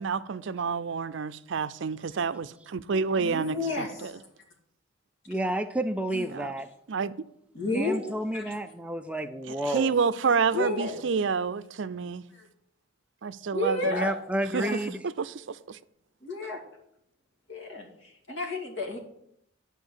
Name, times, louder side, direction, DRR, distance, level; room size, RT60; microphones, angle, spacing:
voice 1, 0.0-4.1 6.3-6.5 6.9-7.1 9.5-12.2 13.2-13.9 14.5-14.7 15.2-15.8, right 5 dB, 65° right, 0.5 m, -29 dB
voice 2, 3.2-4.2 6.1-6.3 7.5-8.0 8.3-8.5 10.5-11.0 12.3-12.5 13.5-14.2 14.5-14.7 16.2-16.6 17.5-19.0, left 2 dB, 70° left, 2.4 m, -31 dB
voice 3, 5.3-6.7 7.7-9.9 13.8-15.0, right 1 dB, 5° right, 0.4 m, -30 dB
11.5 x 4.6 x 8.0 m
head